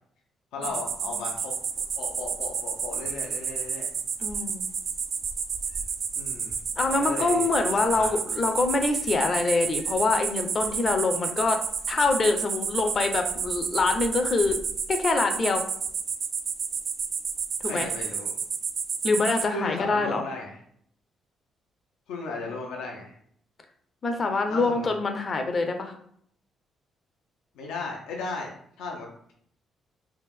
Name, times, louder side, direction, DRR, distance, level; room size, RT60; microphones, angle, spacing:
voice 1, 0.5-1.5 2.0-3.9 6.2-6.5 6.9-7.5 8.0-8.1 17.6-18.3 19.5-20.6 22.1-23.1 24.5-24.9 27.5-29.3, left 3 dB, 90° left, -1 dB, 0.7 m, -35 dB
sound 1, 0.6-19.5, right 6 dB, 55° right, 0.3 m, -31 dB
voice 2, 4.2-4.6 6.8-11.6 11.9-14.6 14.9-15.6 17.6-17.9 19.0-20.2 22.4-22.6 24.0-26.0, left 3 dB, 40° left, 6 dB, 0.6 m, -25 dB
3.4 x 2.5 x 3.5 m, 0.66 s
cardioid pair, 90°, 0 cm